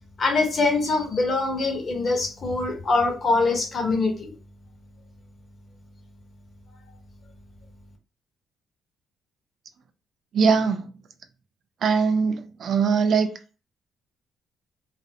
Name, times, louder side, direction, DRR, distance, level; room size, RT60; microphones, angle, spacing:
voice 1, 0.2-4.3, left 3 dB, 45° left, 0.9 m, -23 dB
voice 2, 10.3-10.9 11.8-13.3, right 5 dB, 60° right, 0.4 m, -21 dB
2.4 x 2.0 x 2.7 m
cardioid pair, 90°, 0 cm